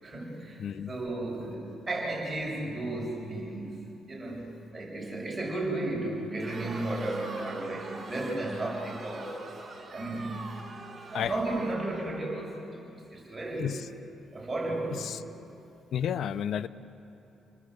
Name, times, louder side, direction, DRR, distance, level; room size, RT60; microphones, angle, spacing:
voice 1, 0.0-0.6 0.9-3.7 4.1-4.4 4.7-9.4 9.9-10.4 10.9-12.6 13.1-13.7 14.3-15.1, right 2 dB, 20° right, -3 dB, 7.0 m, -34 dB
voice 2, 0.6-0.9 11.1-11.4 13.6-13.9 14.9-15.2 15.9-16.7, left 9 dB, 65° left, 15 dB, 0.7 m, -31 dB
Crowd, 6.3-12.5, right 3 dB, 40° right, 5.2 m, -44 dB
29.0 x 20.0 x 8.0 m, 2.8 s
cardioid pair, 90°, 0 cm